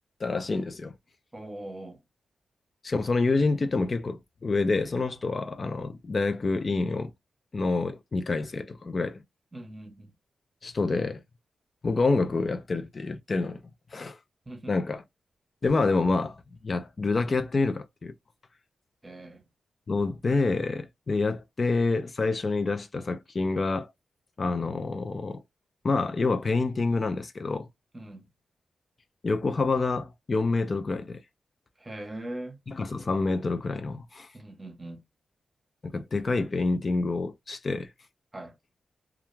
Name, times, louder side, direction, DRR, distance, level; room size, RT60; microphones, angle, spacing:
voice 1, 0.2-0.9 2.8-7.1 7.5-9.2 10.6-11.2 11.8-13.6 13.9-14.2 14.7-15.0 15.6-18.1 19.9-23.9 24.4-25.4 25.8-27.7 29.2-31.2 32.7-34.3 35.9-37.9, left 3 dB, 40° left, 0.3 m, -27 dB
voice 2, 1.3-2.0 9.5-10.1 14.5-14.7 19.0-19.4 27.9-28.3 31.8-32.6 34.3-35.0 38.3-38.5, right 1 dB, 20° right, 0.8 m, -40 dB
2.3 x 2.2 x 3.0 m
cardioid pair, 90°, 0 cm